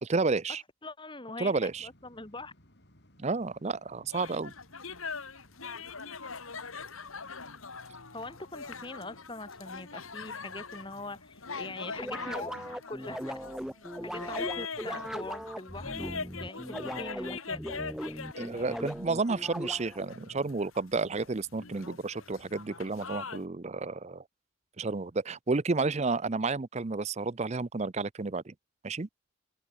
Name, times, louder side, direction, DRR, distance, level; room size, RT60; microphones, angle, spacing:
voice 1, 0.0-0.6 1.4-1.9 3.2-4.5 18.4-24.2 24.8-28.5 28.8-29.1, right 3 dB, 30° right, 0.5 m, -31 dB
voice 2, 0.8-2.5 8.1-13.4 14.0-17.6, left 2 dB, 20° left, 3.3 m, -43 dB
sound 1, 1.5-12.8, equal, 50° left, 6.5 m, -61 dB
sound 2, 4.1-23.4, left 5 dB, 75° left, 3.0 m, -42 dB
sound 3, 12.0-20.1, equal, 5° right, 3.0 m, -39 dB
open air
head